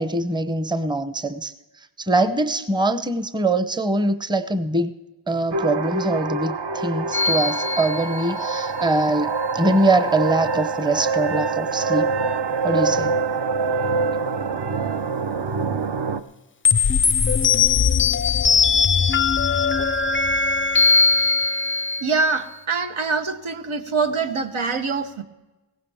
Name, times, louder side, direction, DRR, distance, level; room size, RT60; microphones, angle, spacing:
voice 1, 0.0-1.5 2.0-4.9 5.3-12.1 12.6-13.1, right 2 dB, 10° right, 11 dB, 0.7 m, -23 dB
sound 1, 5.5-16.2, right 4 dB, 60° right, 0.8 m, -25 dB
sound 2, 7.1-8.7 16.6-22.4, left 5 dB, 25° left, 0.4 m, -20 dB
voice 2, 22.0-25.2, right 4 dB, 85° right, 6 dB, 1.0 m, -24 dB
17.0 x 15.5 x 3.5 m, 1.1 s
wide cardioid pair, 55°, 48 cm